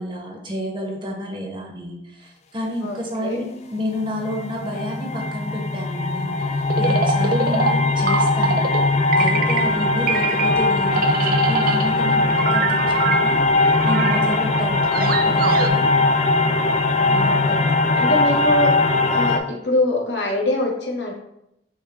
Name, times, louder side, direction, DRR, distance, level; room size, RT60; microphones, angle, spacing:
voice 1, 0.0-8.8 9.2-13.4 13.8-15.9 17.1-17.5 18.1-18.2, left 1 dB, 30° right, 0 dB, 0.8 m, -30 dB
voice 2, 2.8-3.4 14.5-14.9 17.2-17.6 17.9-18.7 19.1-21.1, left 1 dB, 70° left, -1 dB, 1.1 m, -24 dB
sound 1, 4.0-19.4, left 3 dB, 40° left, 0.3 m, -20 dB
sound 2, 6.7-8.8 9.1-9.8 10.1-11.9 12.3-15.7, right 5 dB, 50° right, 0.4 m, -24 dB
6.2 x 2.2 x 3.5 m, 0.80 s
head